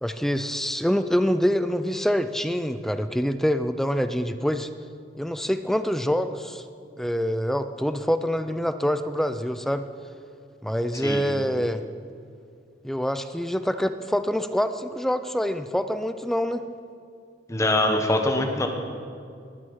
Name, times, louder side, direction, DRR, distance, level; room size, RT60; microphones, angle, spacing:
voice 1, 0.0-4.7 5.2-6.6 7.0-9.9 10.6-11.8 12.8-16.6, equal, ahead, 10 dB, 0.4 m, -25 dB
voice 2, 17.5-18.7, left 1 dB, 20° left, 3 dB, 1.3 m, -23 dB
19.5 x 8.1 x 5.7 m, 2.4 s
head